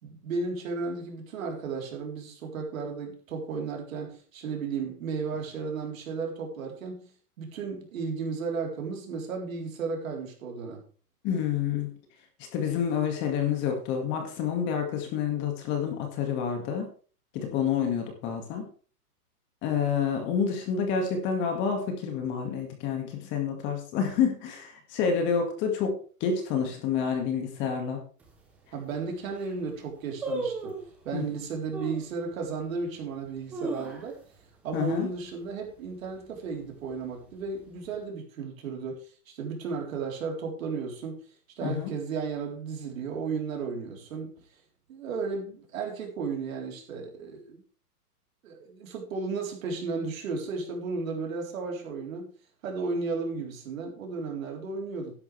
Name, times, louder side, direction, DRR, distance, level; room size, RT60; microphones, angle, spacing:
voice 1, 0.0-7.0 7.4-10.8 28.7-30.8 31.0-34.2 34.6-41.2 41.6-44.4 44.9-47.6 48.4-52.3 52.6-55.1, right 4 dB, 55° right, 4.0 m, -34 dB
voice 2, 11.2-11.9 12.5-16.9 17.3-18.7 19.6-26.0 26.2-28.0 31.1-31.3 34.7-35.1 41.6-41.9, left 7 dB, 25° left, 2.0 m, -28 dB
sound 1, 28.2-28.3 28.9-29.0 29.2-29.6 30.2-31.0 31.7-32.1 32.6-32.7 33.3-34.4 34.7-34.8 35.1-35.5 35.9-36.3 36.9-37.6 37.9-38.0, right 2 dB, 5° right, 0.5 m, -35 dB
12.0 x 10.5 x 3.4 m
hypercardioid pair, 160°, 47 cm